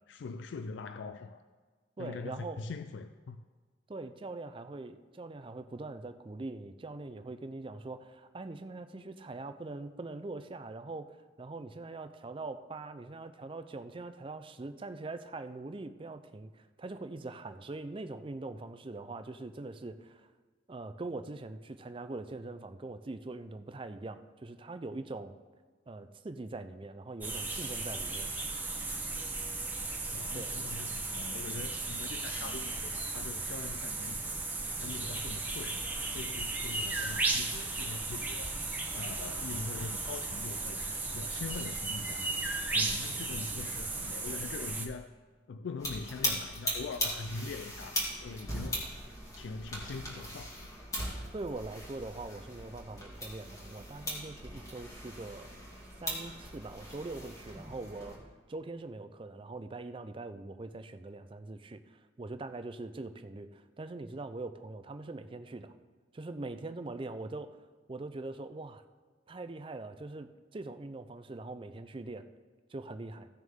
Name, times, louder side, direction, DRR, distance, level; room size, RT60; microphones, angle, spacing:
voice 1, 0.0-1.4 2.0-3.4 30.1-34.2 34.8-35.9 36.1-38.5 38.9-42.3 42.7-45.1 45.5-48.9 49.4-50.6, left 4 dB, 80° left, 9 dB, 0.4 m, -42 dB
voice 2, 2.0-2.6 3.9-20.3 20.7-25.3 25.9-28.3 30.3-30.5 51.3-55.5 56.0-58.2 58.5-65.7 66.1-67.5 67.9-68.8 69.3-72.3 72.7-73.3, right 2 dB, 30° right, 10 dB, 0.4 m, -42 dB
sound 1, 27.2-44.9, right 3 dB, 10° right, 1.0 m, -35 dB
sound 2, 45.8-58.2, equal, 20° left, 2.2 m, -39 dB
16.0 x 6.3 x 3.6 m, 1.4 s
head